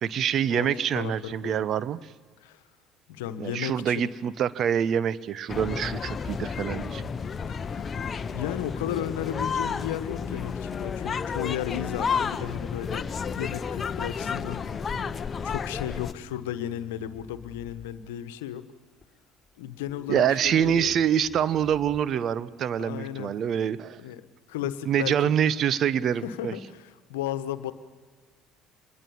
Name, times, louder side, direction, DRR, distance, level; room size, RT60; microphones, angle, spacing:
voice 1, 0.0-2.0 3.4-7.1 15.0-15.1 20.1-24.0 24.9-26.5, right 9 dB, 50° right, 16 dB, 0.9 m, -26 dB
voice 2, 0.9-1.6 2.4-2.6 3.1-4.0 7.5-7.9 8.3-14.9 15.4-18.7 19.6-20.9 22.8-23.4 24.0-24.2 24.5-25.3 26.2-27.7, left 11 dB, 80° left, 11 dB, 1.2 m, -34 dB
sound 1, 5.5-16.1, left 6 dB, 35° left, 0.9 m, -31 dB
Bass guitar, 14.8-18.4 19.0-19.5 19.9-22.0, left 3 dB, 10° left, 5.7 m, -50 dB
26.0 x 21.5 x 7.1 m, 1.5 s
hypercardioid pair, 60°, 0 cm